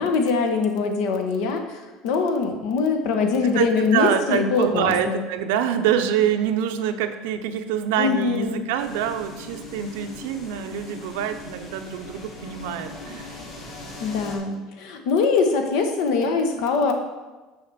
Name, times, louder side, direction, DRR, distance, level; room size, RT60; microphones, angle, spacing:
voice 1, 0.0-5.3 8.0-8.6 14.0-16.9, left 4 dB, 70° left, 5 dB, 1.3 m, -23 dB
voice 2, 3.5-13.3, right 9 dB, 90° right, 7 dB, 0.8 m, -25 dB
sound 1, 8.8-14.4, left 2 dB, 45° left, 2.8 m, -40 dB
6.9 x 5.8 x 6.8 m, 1.2 s
cardioid pair, 155°, 0 cm